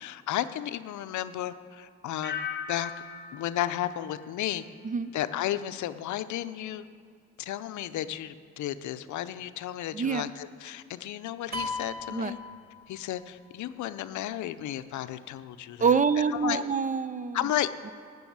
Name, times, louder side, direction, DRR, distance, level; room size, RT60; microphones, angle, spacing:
voice 1, 0.0-2.9 3.3-4.6 5.1-6.8 7.4-12.4 12.9-15.9 16.4-16.6 17.3-17.9, left 12 dB, 75° left, 12 dB, 0.6 m, -33 dB
sound 1, 2.2-5.1 5.4-5.9, left 7 dB, 35° left, 1.5 m, -40 dB
voice 2, 9.9-10.2 12.1-12.3 15.8-17.5, right 6 dB, 25° right, 14 dB, 0.4 m, -26 dB
sound 2, 11.5-13.2, left 2 dB, 60° right, 1.6 m, -36 dB
10.5 x 6.2 x 8.6 m, 2.3 s
cardioid pair, 90°, 30 cm